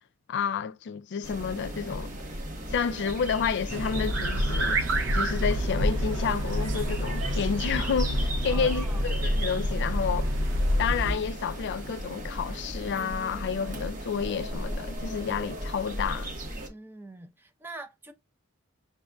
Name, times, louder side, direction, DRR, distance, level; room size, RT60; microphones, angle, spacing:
voice 1, 0.3-2.1 2.7-4.8 5.1-10.3 10.8-16.4, left 6 dB, 60° left, 0.4 m, -30 dB
sound 1, 1.2-16.7, right 1 dB, 40° right, 1.1 m, -36 dB
sound 2, 3.7-11.2, equal, 65° right, 0.6 m, -27 dB
voice 2, 8.5-9.1 16.7-18.1, right 2 dB, 10° right, 0.7 m, -43 dB
7.1 x 2.4 x 2.2 m
head